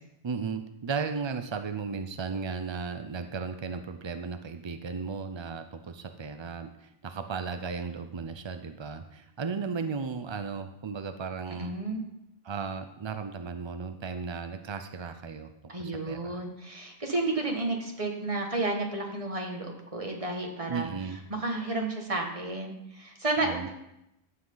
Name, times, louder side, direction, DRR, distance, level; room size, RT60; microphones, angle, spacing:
voice 1, 0.2-11.7 12.4-15.5 15.8-16.4 20.7-21.2 23.4-23.7, right 5 dB, 50° right, 8 dB, 0.3 m, -35 dB
voice 2, 11.5-12.0 15.7-23.7, right 2 dB, 30° right, 1 dB, 1.8 m, -32 dB
14.5 x 7.5 x 3.9 m, 0.85 s
omnidirectional pair, 1.2 m